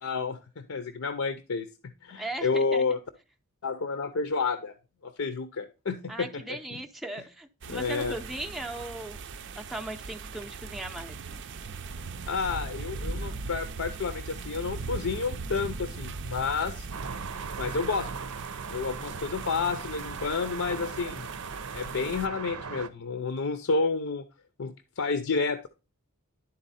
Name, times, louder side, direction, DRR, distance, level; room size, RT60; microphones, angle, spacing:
voice 1, 0.0-1.7 2.0-3.0 3.6-4.7 5.0-6.8 7.7-8.2 12.3-16.9 17.6-18.1 18.7-21.3 21.7-24.2 24.6-25.6, left 4 dB, 65° left, 9 dB, 0.6 m, -30 dB
voice 2, 2.2-3.0 6.1-9.2 9.6-11.2, right 1 dB, ahead, 2 dB, 0.5 m, -38 dB
sound 1, 7.6-22.3, right 4 dB, 55° right, 0.5 m, -39 dB
sound 2, 16.9-22.9, right 5 dB, 90° right, 0.7 m, -39 dB
11.0 x 4.0 x 4.1 m, 0.31 s
head